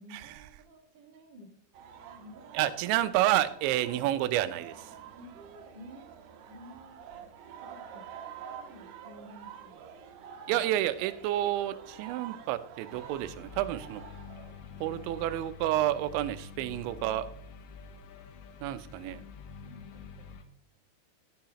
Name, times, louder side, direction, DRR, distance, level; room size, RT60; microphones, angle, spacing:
voice 1, 0.0-1.5 2.0-2.8 5.2-9.8 18.9-19.3 19.6-20.3, equal, 55° right, 1 dB, 1.2 m, -53 dB
sound 1, 1.7-15.4, right 8 dB, 70° right, 2.8 m, -48 dB
voice 2, 2.5-4.9 10.5-14.0 14.8-17.3 18.6-19.2, right 13 dB, 90° right, 13 dB, 3.0 m, -29 dB
sound 2, 12.9-20.4, left 6 dB, 75° left, 2.1 m, -47 dB
12.5 x 10.5 x 2.9 m, 0.65 s
omnidirectional pair, 5.2 m